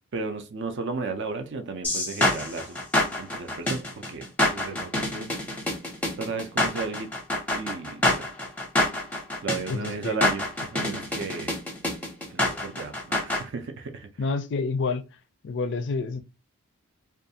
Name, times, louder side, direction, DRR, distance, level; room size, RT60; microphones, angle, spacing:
voice 1, 0.1-2.8 3.2-5.3 6.2-7.1 7.5-8.3 9.4-10.4 10.7-11.5 12.3-14.1, right 4 dB, 55° right, 0.4 m, -34 dB
sound 1, 1.8-13.4, left 1 dB, 5° left, 0.6 m, -26 dB
voice 2, 9.7-10.2 14.2-15.0 15.4-16.2, left 4 dB, 55° left, 0.4 m, -28 dB
2.5 x 2.3 x 2.6 m
head